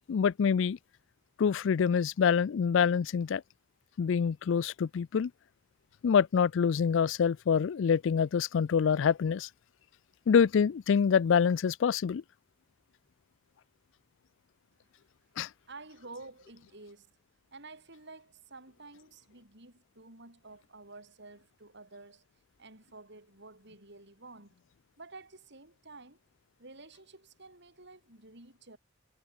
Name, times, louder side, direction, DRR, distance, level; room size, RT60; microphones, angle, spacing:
voice 1, 0.1-0.8 1.4-3.4 4.0-5.3 6.0-9.5 10.3-12.2 15.4-15.5, left 6 dB, 70° left, 0.4 m, -26 dB
voice 2, 15.7-17.1 17.5-22.2 22.6-24.5 25.0-26.2 26.6-28.8, right 3 dB, 60° right, 7.7 m, -51 dB
head